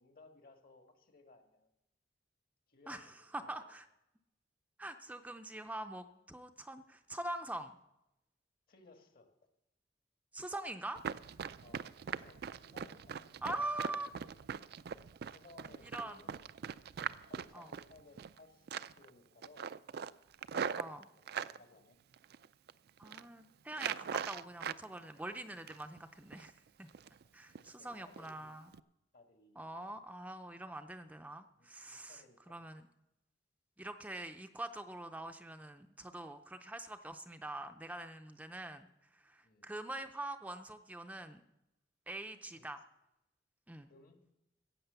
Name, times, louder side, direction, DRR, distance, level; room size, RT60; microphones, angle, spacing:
voice 1, 0.0-1.7 2.7-3.7 8.7-9.5 11.6-14.3 14.6-14.7 15.3-16.5 17.2-19.7 20.5-22.0 26.9-28.7 29.1-30.1 31.6-32.6 39.4-39.7 42.5-42.7 43.9-44.2, left 3 dB, 55° left, 5 dB, 1.7 m, -62 dB
voice 2, 3.3-3.9 4.8-7.7 10.3-11.0 13.4-14.1 15.9-16.2 17.5-17.7 20.8-21.0 23.0-26.5 26.8-26.9 27.3-28.6 29.6-32.9 33.8-38.9 39.1-41.4 42.1-42.8 43.7-43.9, right 1 dB, 10° right, 7 dB, 0.5 m, -44 dB
Run, 11.0-18.4 18.7-19.1 19.4-21.6 22.1-22.7 23.0-23.3 23.7-24.8 25.2-26.0 26.3-26.5 26.9-27.2 27.6-27.7 28.2-28.3 28.7-28.8, right 7 dB, 60° right, 0.4 m, -41 dB
15.5 x 8.6 x 6.8 m, 0.88 s
head